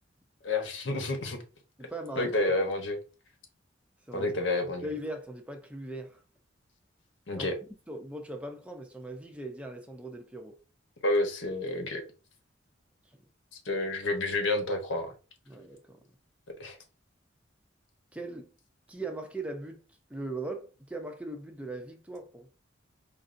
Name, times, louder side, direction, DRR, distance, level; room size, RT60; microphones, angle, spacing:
voice 1, 0.4-1.4 2.2-3.0 4.1-4.9 7.3-7.5 11.0-12.0 13.6-15.1 16.6-16.8, left 2 dB, 75° left, 1.1 m, -29 dB
voice 2, 1.8-2.4 4.1-4.3 4.8-6.2 7.3-7.5 7.9-10.5 13.1-13.2 15.5-16.0 18.1-18.5 18.9-19.8 20.1-22.5, right 2 dB, 5° right, 0.6 m, -39 dB
5.2 x 2.6 x 2.6 m
head